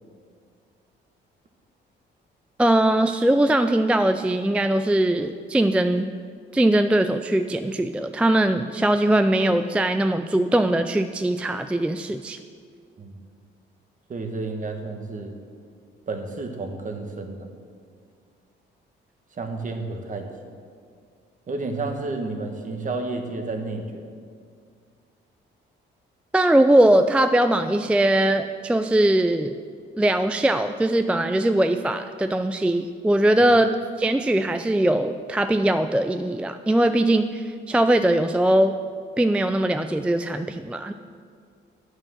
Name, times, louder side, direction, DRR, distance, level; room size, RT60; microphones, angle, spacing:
voice 1, 2.6-6.1 6.5-12.4 26.3-29.6 30.0-38.8 39.2-40.9, right 1 dB, 5° right, 9 dB, 0.3 m, -21 dB
voice 2, 14.1-15.4 16.1-17.5 19.3-20.3 21.5-24.1, right 3 dB, 40° right, 4 dB, 1.4 m, -31 dB
9.0 x 6.4 x 7.5 m, 2.1 s
cardioid pair, 90°, 20 cm